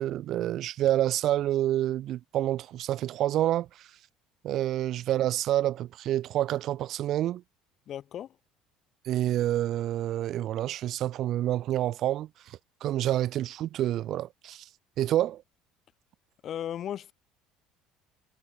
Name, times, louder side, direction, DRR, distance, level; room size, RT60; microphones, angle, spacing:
voice 1, 0.0-3.7 4.4-7.4 9.1-12.3 12.8-14.6 15.0-15.4, right 13 dB, 55° right, 2.2 m, -28 dB
voice 2, 7.9-8.4 16.4-17.1, left 10 dB, 45° left, 3.7 m, -36 dB
cardioid pair, 120°, 0 cm